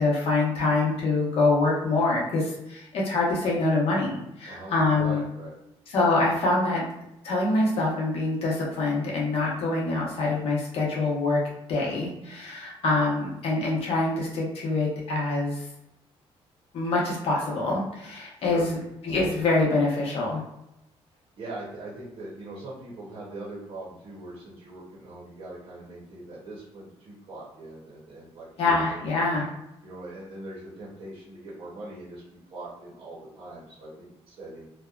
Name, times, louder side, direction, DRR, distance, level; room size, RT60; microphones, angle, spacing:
voice 1, 0.0-5.2 5.9-6.8 7.2-11.4 11.7-15.7 16.7-20.4 28.6-29.5, left 2 dB, 65° left, -3 dB, 0.8 m, -25 dB
voice 2, 5.0-5.5 18.4-18.7 21.4-29.1 29.8-34.7, right 2 dB, 55° right, -6 dB, 0.7 m, -41 dB
2.7 x 2.1 x 2.3 m, 0.87 s
cardioid pair, 165°, 11 cm